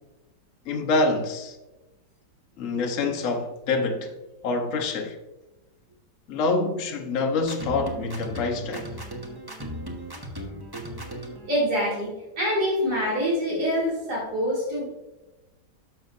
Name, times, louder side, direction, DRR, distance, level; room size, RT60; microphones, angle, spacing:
voice 1, 0.7-1.6 2.6-4.1 4.4-5.2 6.3-8.9, left 3 dB, 55° left, 1.2 m, -26 dB
sound 1, 7.5-11.5, equal, 15° right, 0.9 m, -37 dB
voice 2, 11.5-14.9, equal, 65° right, 3.1 m, -25 dB
11.5 x 6.8 x 2.5 m
omnidirectional pair, 1.8 m